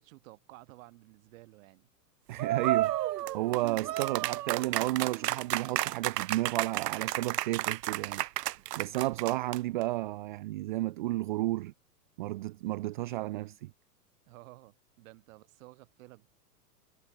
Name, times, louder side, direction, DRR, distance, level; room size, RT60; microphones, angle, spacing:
voice 1, 0.0-1.9 14.3-16.3, right 20 dB, 50° right, 3.5 m, -53 dB
voice 2, 2.3-3.0 3.3-8.2 8.8-11.7 12.2-13.7, right 17 dB, 35° right, 0.4 m, -32 dB
sound 1, 2.4-9.8, right 14 dB, 75° right, 0.8 m, -32 dB
hypercardioid pair, 125°, 49 cm